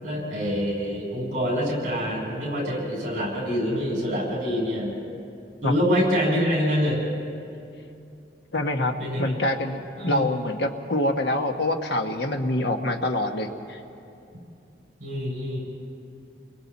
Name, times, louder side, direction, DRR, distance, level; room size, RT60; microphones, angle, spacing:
voice 1, 0.0-4.9 5.6-7.0 9.0-9.3 10.0-10.2 15.0-15.6, equal, 45° right, -2 dB, 7.4 m, -26 dB
voice 2, 8.5-13.8, left 1 dB, 70° left, 4 dB, 1.2 m, -25 dB
29.5 x 22.5 x 4.2 m, 2.6 s
head